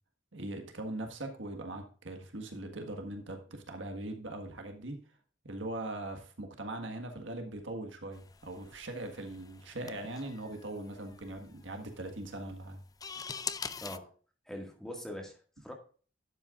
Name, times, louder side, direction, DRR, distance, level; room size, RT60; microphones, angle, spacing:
voice 1, 0.3-5.0 5.4-12.8, right 1 dB, 70° right, 4 dB, 1.7 m, -41 dB
sound 1, 8.1-14.0, left 6 dB, 20° left, 0.4 m, -44 dB
voice 2, 13.8-14.1 14.5-15.7, left 1 dB, ahead, 1 dB, 2.0 m, -43 dB
11.5 x 8.1 x 2.5 m, 0.39 s
head